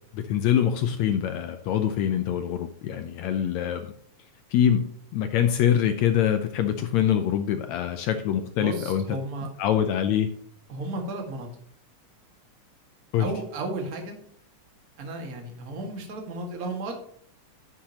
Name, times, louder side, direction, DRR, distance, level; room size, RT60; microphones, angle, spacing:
voice 1, 0.1-3.9 4.5-4.9 5.1-9.0 9.6-10.3 13.1-13.3, left 9 dB, 80° left, 8 dB, 1.7 m, -24 dB
voice 2, 8.6-9.5 10.7-11.5 13.2-14.1 15.0-17.0, right 2 dB, 35° right, 2 dB, 1.9 m, -33 dB
9.9 x 9.6 x 3.0 m, 0.63 s
omnidirectional pair, 3.7 m